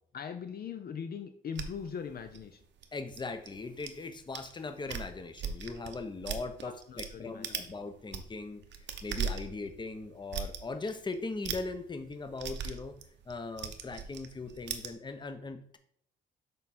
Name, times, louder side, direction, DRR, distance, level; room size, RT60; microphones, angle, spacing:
voice 1, 0.1-2.6 6.6-7.7, left 7 dB, 50° left, 7 dB, 0.6 m, -41 dB
sound 1, 1.6-3.9 4.3-4.5 4.8-7.1 7.4-7.7 8.0-14.9, right 7 dB, 65° right, 0.8 m, -39 dB
voice 2, 2.9-13.0 13.3-15.8, left 3 dB, 25° left, 8 dB, 0.8 m, -40 dB
6.6 x 3.6 x 4.2 m, 0.68 s
cardioid pair, 90°, 20 cm